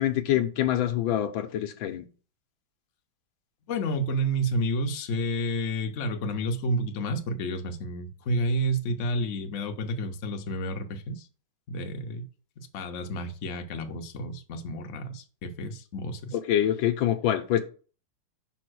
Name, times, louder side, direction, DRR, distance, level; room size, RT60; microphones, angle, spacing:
voice 1, 0.0-2.1 16.3-17.6, left 11 dB, 75° left, 1.5 m, -25 dB
voice 2, 3.7-11.3 11.7-12.3 12.6-16.4, right 1 dB, 50° left, 0.9 m, -30 dB
5.4 x 4.3 x 6.1 m
omnidirectional pair, 2.2 m